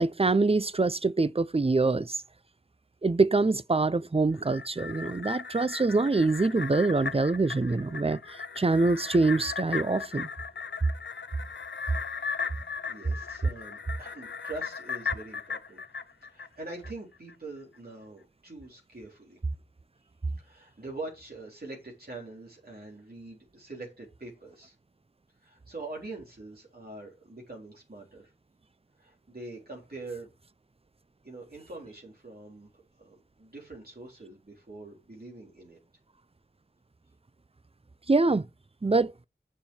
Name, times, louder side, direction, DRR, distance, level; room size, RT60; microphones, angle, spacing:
voice 1, 0.0-2.2 3.0-10.3 38.1-38.4 38.8-39.1, right 3 dB, 30° right, 0.6 m, -25 dB
sound 1, 4.4-16.9 17.3-17.4, left 5 dB, 75° left, 0.6 m, -37 dB
voice 2, 12.8-15.8 16.3-19.4 20.4-24.7 25.4-28.3 29.0-30.3 31.2-32.7 33.0-35.8, right 2 dB, 55° right, 3.8 m, -44 dB
7.6 x 7.1 x 6.3 m
wide cardioid pair, 50°, 19 cm